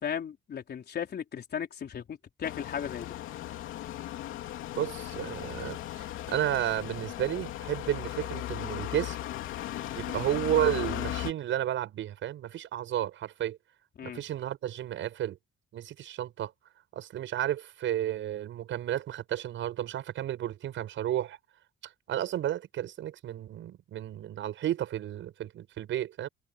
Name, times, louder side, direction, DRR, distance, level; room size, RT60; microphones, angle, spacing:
voice 1, 0.0-3.1 14.0-14.2, left 8 dB, 55° left, 4.3 m, -36 dB
sound 1, 2.4-11.3, left 13 dB, 90° left, 3.1 m, -37 dB
voice 2, 4.8-9.2 9.9-13.6 14.0-15.4 15.7-16.5 16.9-21.4 22.1-26.3, right 12 dB, 75° right, 6.7 m, -32 dB
open air
cardioid pair, 90°, 20 cm